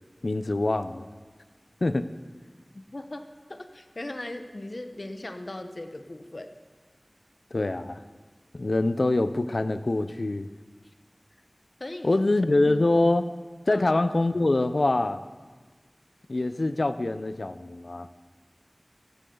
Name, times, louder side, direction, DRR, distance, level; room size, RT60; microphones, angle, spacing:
voice 1, 0.2-1.1 1.8-2.1 7.5-8.0 8.5-10.5 12.0-13.3 13.7-15.2 16.3-18.1, left 2 dB, 75° left, 11 dB, 0.6 m, -24 dB
voice 2, 2.7-3.2 3.5-6.5 11.8-12.2 13.7-13.9, left 1 dB, 60° left, 7 dB, 1.1 m, -38 dB
15.5 x 14.5 x 3.9 m, 1.3 s
wide cardioid pair, 45°, 0 cm